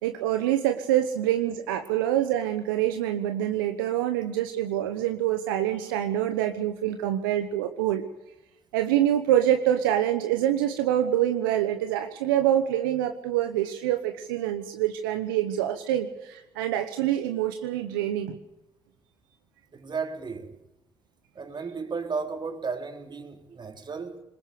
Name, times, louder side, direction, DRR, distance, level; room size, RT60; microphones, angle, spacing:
voice 1, 0.0-8.1 8.7-18.4, right 12 dB, 85° right, 1.0 m, -26 dB
voice 2, 19.7-20.6 21.4-24.2, right 5 dB, 45° right, 3.7 m, -34 dB
21.5 x 20.5 x 6.9 m
hypercardioid pair, 45°, 11 cm